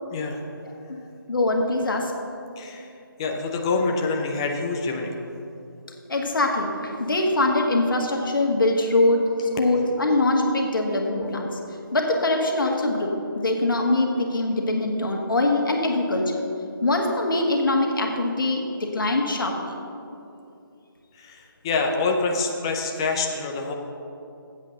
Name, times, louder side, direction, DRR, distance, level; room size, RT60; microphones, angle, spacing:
voice 1, 1.3-2.1 6.1-11.6 11.9-16.4 16.8-19.7, left 2 dB, 65° left, 1 dB, 1.8 m, -23 dB
voice 2, 2.6-2.9 3.2-5.2 9.4-9.5 10.8-11.0 21.1-23.7, left 3 dB, 10° left, 2 dB, 0.5 m, -26 dB
8.3 x 8.1 x 6.7 m, 2.7 s
figure-of-eight pair, 160°, 12 cm